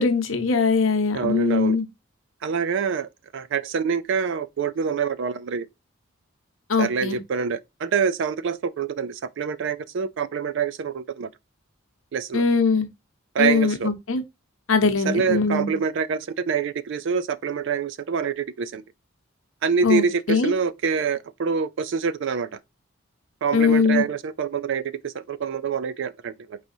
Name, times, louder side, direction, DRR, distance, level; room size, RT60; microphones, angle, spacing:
voice 1, 0.0-1.8 6.7-7.2 12.3-12.9 13.4-14.2 14.7-15.7 19.8-20.0 20.3-20.5 23.5-24.0, left 4 dB, 70° left, 0.9 m, -21 dB
voice 2, 1.1-1.8 2.4-5.7 6.8-11.3 12.1-12.4 13.3-13.9 15.0-18.8 19.6-22.6 23.4-26.6, right 6 dB, 60° right, 0.4 m, -26 dB
4.7 x 4.0 x 2.6 m
head